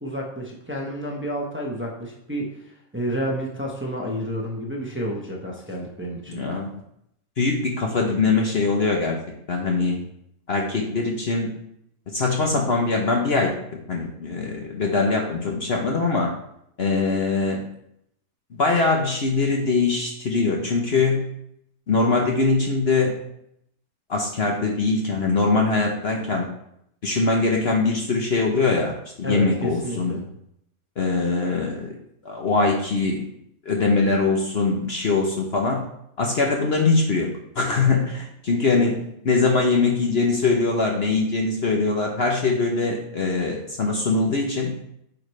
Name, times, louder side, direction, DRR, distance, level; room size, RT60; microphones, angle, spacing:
voice 1, 0.0-2.5 2.9-6.4 29.2-30.2, equal, 10° right, -2 dB, 1.0 m, -30 dB
voice 2, 6.3-6.7 7.4-9.2 9.5-10.0 10.5-11.5 12.1-16.3 16.8-17.6 18.5-21.3 21.9-23.1 24.1-26.5 27.0-30.2 31.0-32.0 32.2-33.2 33.7-35.8 36.2-44.7, left 3 dB, 50° left, 1 dB, 1.0 m, -22 dB
8.8 x 4.9 x 3.2 m, 0.74 s
omnidirectional pair, 1.6 m